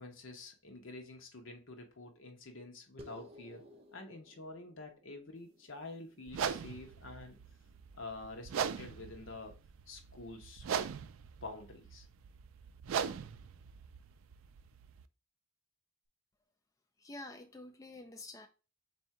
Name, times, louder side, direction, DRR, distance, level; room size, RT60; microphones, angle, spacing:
voice 1, 0.0-3.6 3.9-7.4 7.9-9.5 9.9-10.7 11.4-12.1, left 2 dB, 70° left, 1.0 m, -48 dB
sound 1, 3.0-7.8, left 1 dB, 30° right, 0.6 m, -58 dB
sound 2, 6.3-15.0, right 7 dB, 80° right, 0.3 m, -40 dB
voice 2, 17.0-18.5, left 2 dB, 15° left, 0.3 m, -48 dB
3.6 x 2.7 x 4.3 m
head